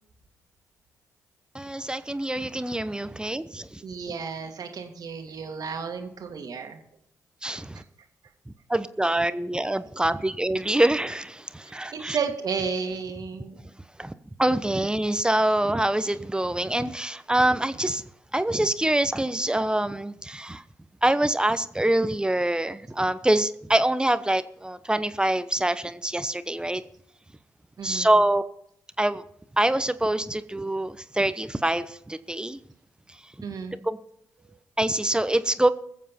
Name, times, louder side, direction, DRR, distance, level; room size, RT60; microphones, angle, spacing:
voice 1, 1.5-3.8 7.4-7.8 8.5-12.2 14.0-14.1 14.4-18.0 18.3-20.6 21.0-26.8 27.8-28.4 29.0-29.2 29.5-32.6 33.1-33.5 33.8-34.0 34.8-35.7, right 1 dB, 10° right, 12 dB, 0.9 m, -25 dB
voice 2, 3.8-6.8 7.5-7.8 11.6-13.6 27.8-28.1 33.4-33.8 34.5-34.6, right 5 dB, 60° right, 5 dB, 2.0 m, -33 dB
21.5 x 7.4 x 4.4 m, 0.70 s
hypercardioid pair, 45°, 7 cm